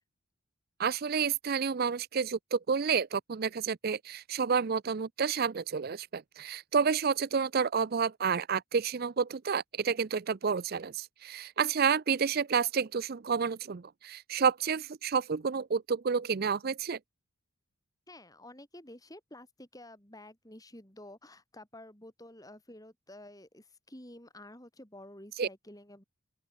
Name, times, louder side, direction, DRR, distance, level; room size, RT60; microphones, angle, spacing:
voice 1, 0.8-17.0 25.4-25.5, right 6 dB, 45° right, 0.5 m, -30 dB
voice 2, 18.1-26.0, left 1 dB, 15° left, 4.4 m, -51 dB
open air
head